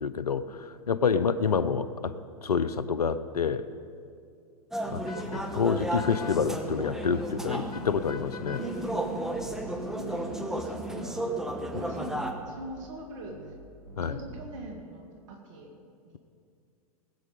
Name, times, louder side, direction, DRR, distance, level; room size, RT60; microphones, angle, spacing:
voice 1, 0.0-3.7 4.9-5.0 5.3-8.6 14.0-14.2, left 6 dB, 90° left, 14 dB, 0.6 m, -28 dB
sound 1, 4.7-12.3, right 1 dB, ahead, 1.1 m, -34 dB
voice 2, 4.8-5.1 8.5-13.6 14.0-15.7 16.0-16.2, right 2 dB, 55° right, 2 dB, 2.3 m, -43 dB
sound 2, 4.9-6.3 6.6-7.9 8.4-8.7 9.0-11.1 11.4-12.7 13.2-13.5 13.8-14.4, equal, 80° right, 1.8 m, -45 dB
sound 3, 5.0-10.8, left 6 dB, 75° left, 1.1 m, -48 dB
19.0 x 8.4 x 5.3 m, 2.4 s
hypercardioid pair, 110°, 19 cm